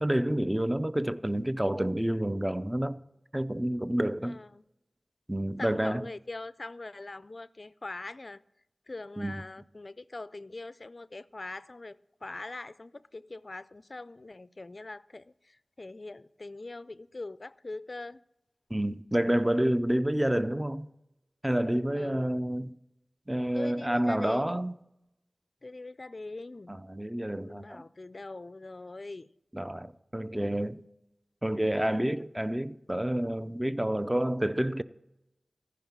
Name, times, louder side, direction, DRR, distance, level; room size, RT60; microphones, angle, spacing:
voice 1, 0.0-3.0 3.3-4.4 5.3-6.1 9.2-9.4 18.7-20.9 21.4-22.8 23.3-24.7 26.7-27.8 29.5-30.8 31.4-34.8, right 1 dB, 15° right, 0.6 m, -29 dB
voice 2, 4.2-4.6 5.6-8.4 8.9-18.2 21.9-22.3 23.5-24.6 25.6-26.8 27.4-29.3 30.3-30.5, left 2 dB, 50° left, 0.4 m, -42 dB
14.5 x 5.9 x 7.2 m
wide cardioid pair, 55°, 0 cm